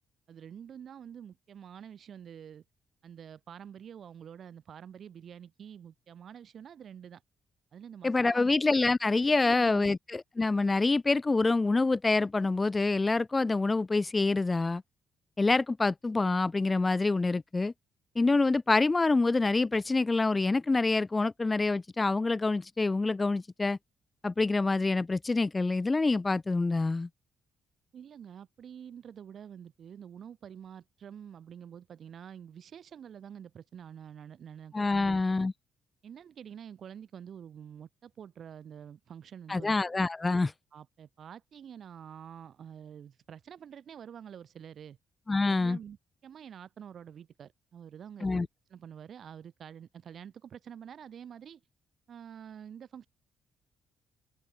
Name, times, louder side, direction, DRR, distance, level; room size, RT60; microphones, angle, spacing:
voice 1, 0.3-2.6 3.0-7.2 7.7-8.4 9.1-9.9 27.9-35.2 36.0-39.7 40.7-45.0 45.4-46.0 46.2-51.6 52.1-53.1, right 8 dB, 60° right, 2.9 m, -47 dB
voice 2, 8.0-14.8 15.4-17.7 18.2-23.8 24.2-27.1 34.7-35.5 39.5-40.5 45.3-45.8 48.2-48.5, left 3 dB, 25° left, 0.3 m, -26 dB
supercardioid pair, 65°, 0 cm